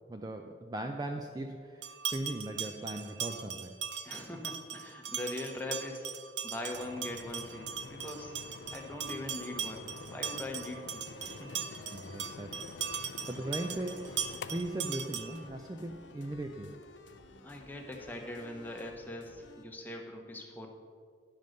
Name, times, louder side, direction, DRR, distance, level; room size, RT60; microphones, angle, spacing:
voice 1, 0.1-3.7 11.9-16.8, right 1 dB, 20° right, 4 dB, 0.4 m, -39 dB
sound 1, 1.8-15.5, right 7 dB, 70° right, 0.6 m, -40 dB
voice 2, 4.0-11.6 17.4-20.7, left 1 dB, 10° left, 1 dB, 1.0 m, -42 dB
sound 2, 6.7-17.9, left 5 dB, 70° left, 0.4 m, -49 dB
sound 3, 11.1-19.6, left 2 dB, 85° left, 0.9 m, -54 dB
10.5 x 5.3 x 6.4 m, 2.1 s
head